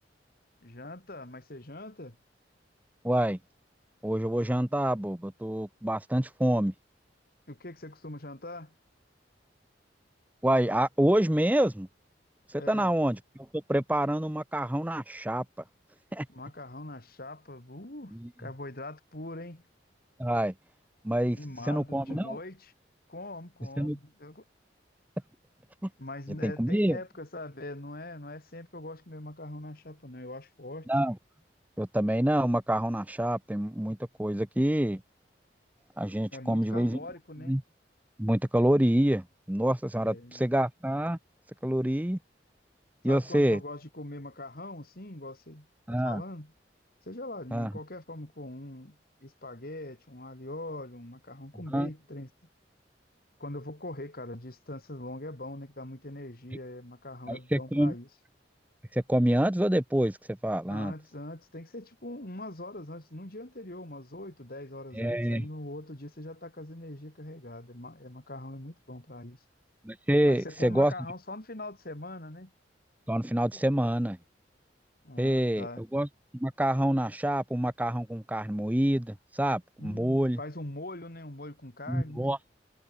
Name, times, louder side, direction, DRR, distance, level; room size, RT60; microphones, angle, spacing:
voice 1, 0.6-2.2 7.5-8.7 12.6-12.9 16.3-19.6 21.2-22.7 23.1-24.4 26.0-30.9 36.3-37.6 39.9-40.4 43.0-46.5 47.0-52.3 53.4-58.1 60.7-69.4 70.3-72.5 75.0-75.8 79.8-82.3, left 1 dB, 55° left, 3.2 m, -42 dB
voice 2, 3.0-3.4 4.0-6.7 10.4-11.9 12.5-13.2 13.5-15.4 16.1-16.3 20.2-20.5 21.0-21.4 21.7-22.4 23.8-24.0 26.4-27.0 30.9-31.2 31.8-35.0 36.0-37.0 37.5-37.6 38.2-41.2 41.6-42.2 43.0-43.6 45.9-46.2 47.5-47.7 51.7-51.9 57.3-57.9 58.9-60.2 60.4-60.9 64.9-65.5 69.8-70.9 73.1-74.2 75.2-76.1 76.3-80.4 81.9-82.4, right 1 dB, 10° right, 0.7 m, -27 dB
head